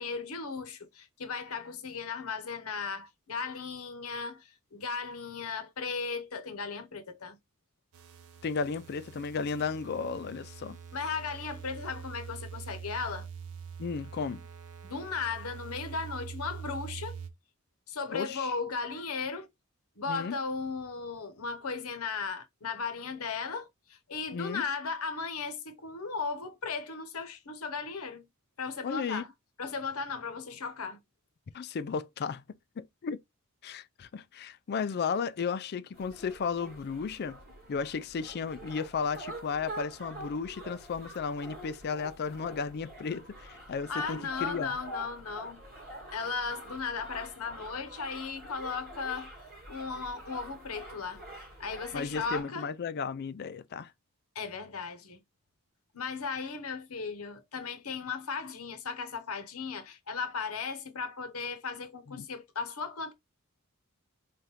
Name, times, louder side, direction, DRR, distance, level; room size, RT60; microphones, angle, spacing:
voice 1, 0.0-7.4 10.9-13.3 14.8-17.2 17.9-19.5 20.0-28.3 28.6-29.3 29.6-31.0 43.9-45.6 46.1-49.3 49.7-51.2 51.6-52.7 54.3-55.2 55.9-63.1, left 5 dB, 80° left, 0.9 m, -36 dB
sound 1, 7.9-17.3, right 6 dB, 85° right, 0.6 m, -44 dB
voice 2, 8.4-10.8 13.8-14.4 18.1-18.5 20.1-20.4 24.3-24.6 28.8-29.2 31.5-32.4 32.8-33.2 33.6-37.4 37.7-44.8 51.9-53.9 62.1-62.3, left 5 dB, 50° left, 0.4 m, -34 dB
sound 2, 35.9-52.4, right 1 dB, 45° right, 2.2 m, -46 dB
3.6 x 3.5 x 2.9 m
head